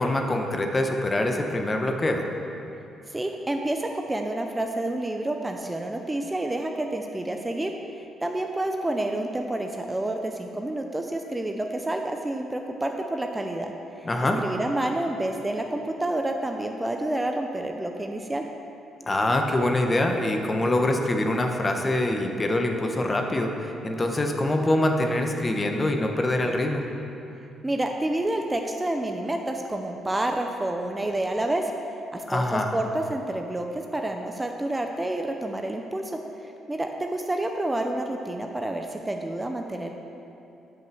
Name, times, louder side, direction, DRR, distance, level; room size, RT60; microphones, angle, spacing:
voice 1, 0.0-2.3 14.0-14.4 19.1-26.8 32.3-32.7, left 1 dB, 25° left, 3 dB, 1.0 m, -24 dB
voice 2, 3.1-7.7 8.2-13.7 14.0-14.1 14.4-18.5 27.6-31.7 32.1-33.7 33.9-36.2 36.7-39.9, right 1 dB, 15° right, 3 dB, 0.6 m, -29 dB
9.3 x 5.4 x 7.0 m, 2.8 s
cardioid pair, 90°, 0 cm